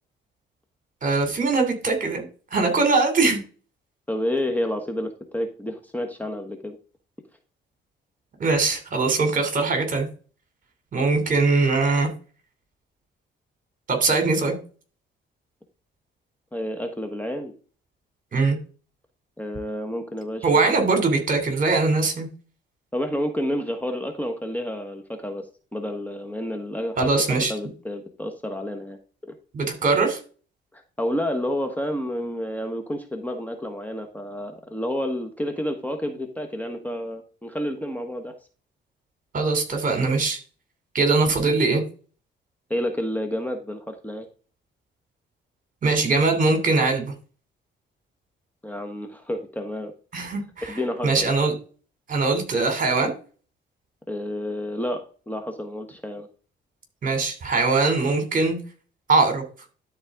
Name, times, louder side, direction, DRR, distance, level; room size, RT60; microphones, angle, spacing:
voice 1, 1.0-2.2 2.5-3.4 8.4-10.1 10.9-12.1 13.9-14.5 18.3-18.6 20.4-22.3 27.0-27.5 29.5-30.2 39.3-40.4 40.9-41.8 45.8-47.1 50.1-51.5 52.1-53.1 57.0-58.6 59.1-59.4, right 3 dB, 45° right, 5 dB, 3.0 m, -21 dB
voice 2, 4.1-6.8 16.5-17.5 19.4-20.8 22.9-25.5 25.7-27.1 27.5-29.0 30.7-38.3 42.7-44.3 48.6-49.9 50.7-51.4 54.1-56.3, left 1 dB, 10° left, 5 dB, 1.4 m, -30 dB
12.5 x 4.1 x 3.7 m, 0.37 s
cardioid pair, 90°, 20 cm